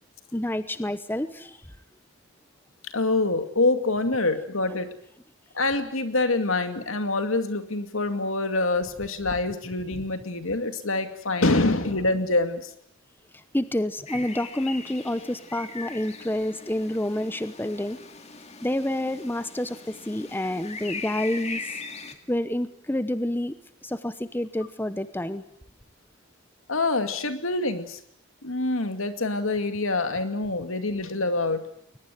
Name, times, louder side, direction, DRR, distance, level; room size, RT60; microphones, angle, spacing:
voice 1, 0.3-1.6 13.3-18.0 18.6-21.6 22.3-23.5 23.8-25.4, left 1 dB, 10° left, 12 dB, 0.9 m, -28 dB
voice 2, 2.9-4.9 5.5-12.7 26.7-28.0 28.4-31.6, left 2 dB, 75° left, 8 dB, 2.4 m, -25 dB
sound 1, 14.1-22.1, left 4 dB, 30° left, 2.3 m, -40 dB
22.0 x 20.5 x 9.3 m, 0.71 s
head